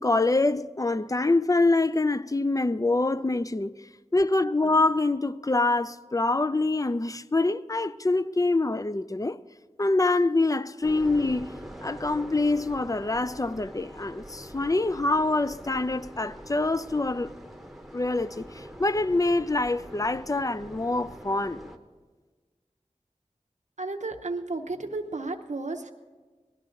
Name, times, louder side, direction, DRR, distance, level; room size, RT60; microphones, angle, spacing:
voice 1, 0.0-3.7 4.1-9.4 9.8-11.5 11.8-17.3 17.9-21.7, left 2 dB, 25° left, 0.4 m, -25 dB
sound 1, 10.8-21.8, equal, ahead, 1.0 m, -44 dB
voice 2, 23.8-25.9, right 3 dB, 70° right, 0.7 m, -33 dB
19.5 x 11.5 x 3.8 m
wide cardioid pair, 40°, 13 cm